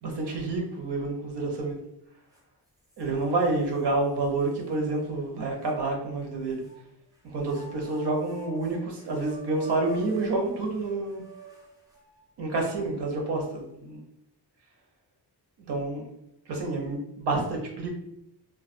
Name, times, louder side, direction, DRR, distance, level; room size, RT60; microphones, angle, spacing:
voice 1, 0.0-1.8 3.0-6.6 7.3-11.2 12.4-14.0 15.7-16.1 16.5-17.0 17.3-17.9, right 2 dB, 75° right, 0 dB, 0.8 m, -28 dB
sound 1, 2.3-2.4 2.9-3.8 4.5-4.6 5.7-6.8 7.4-12.3, right 3 dB, 10° right, 0.5 m, -47 dB
2.3 x 2.3 x 2.5 m, 0.82 s
wide cardioid pair, 125°, 40 cm